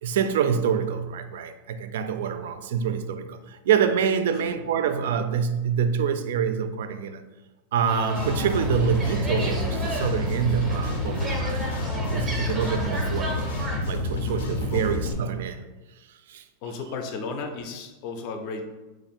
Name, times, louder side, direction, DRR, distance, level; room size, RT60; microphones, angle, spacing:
voice 1, 0.0-7.2 7.7-11.6 12.1-13.5 13.9-15.6 16.3-16.4, right 7 dB, 70° right, 0.3 m, -26 dB
sound 1, 7.9-13.8, right 1 dB, 10° right, 0.5 m, -34 dB
sound 2, 8.1-15.1, left 2 dB, 85° left, 0.6 m, -29 dB
voice 2, 16.6-18.6, left 4 dB, 40° left, 0.4 m, -34 dB
3.1 x 2.4 x 4.3 m
supercardioid pair, 175°, 0 cm